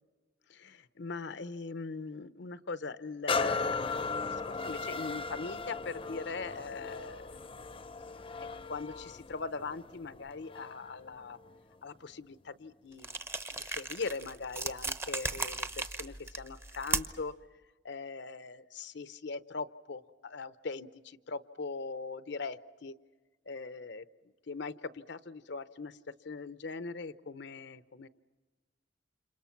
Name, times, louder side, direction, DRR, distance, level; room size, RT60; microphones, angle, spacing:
voice 1, 0.5-7.4 8.5-11.4 11.8-13.2 13.6-17.3 17.8-22.9 23.5-24.0 24.5-26.0 26.2-28.1, left 4 dB, 65° left, 14 dB, 0.8 m, -41 dB
sound 1, 3.3-10.9 11.4-11.6, left 4 dB, 30° left, 0.7 m, -37 dB
sound 2, 13.0-17.3, right 3 dB, 15° right, 0.9 m, -36 dB
29.5 x 27.0 x 5.9 m, 1.3 s
head